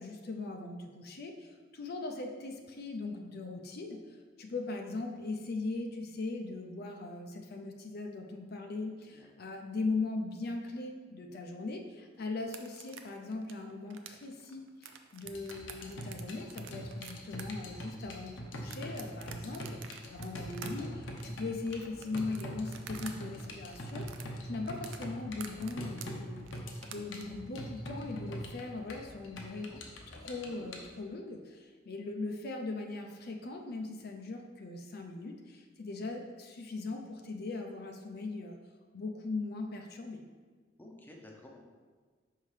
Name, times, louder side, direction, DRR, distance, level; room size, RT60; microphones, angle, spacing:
voice 1, 0.0-29.7 30.2-38.6 38.9-40.2, left 3 dB, 55° left, 3 dB, 0.5 m, -39 dB
sound 1, 12.4-23.1 23.4-27.2, right 8 dB, 85° right, 0.5 m, -49 dB
sound 2, 15.3-30.8, equal, 85° left, 0.8 m, -43 dB
voice 2, 40.8-41.6, left 1 dB, 10° left, -1 dB, 0.7 m, -54 dB
5.5 x 5.4 x 3.2 m, 1.5 s
head